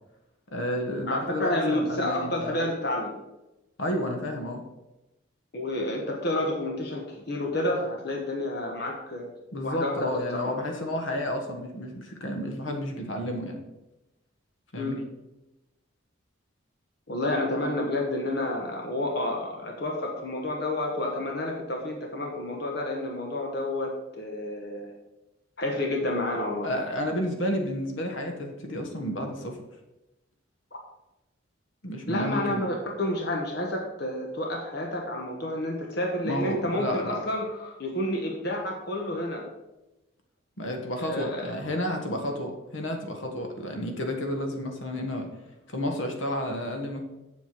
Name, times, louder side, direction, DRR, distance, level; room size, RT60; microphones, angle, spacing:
voice 1, 0.5-2.6 3.8-4.6 9.5-13.6 14.7-15.0 26.6-29.6 31.8-32.6 36.2-37.2 40.6-45.3 45.7-47.0, left 1 dB, 70° left, 3 dB, 1.5 m, -31 dB
voice 2, 1.1-3.1 5.5-9.3 9.6-10.6 14.8-15.0 17.1-24.9 25.6-26.7 30.7-30.8 32.1-39.5 41.0-41.5, left 1 dB, 55° left, 0 dB, 1.3 m, -30 dB
7.8 x 7.5 x 4.6 m, 0.97 s
head